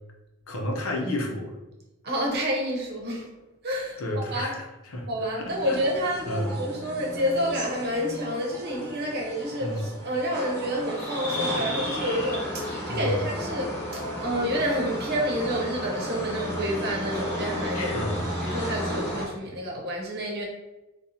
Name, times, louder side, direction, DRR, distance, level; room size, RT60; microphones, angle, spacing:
voice 1, 0.5-1.6 4.0-5.1 5.4-5.8 6.3-6.5 9.6-9.9 12.9-13.2 17.7-18.2, left 1 dB, 80° left, 1 dB, 0.7 m, -31 dB
voice 2, 2.0-3.3 3.6-4.5 5.1-18.0 18.4-20.4, equal, 50° right, -1 dB, 0.8 m, -29 dB
sound 1, 5.5-19.3, equal, 10° left, 1.3 m, -33 dB
4.1 x 2.2 x 2.7 m, 1.0 s
head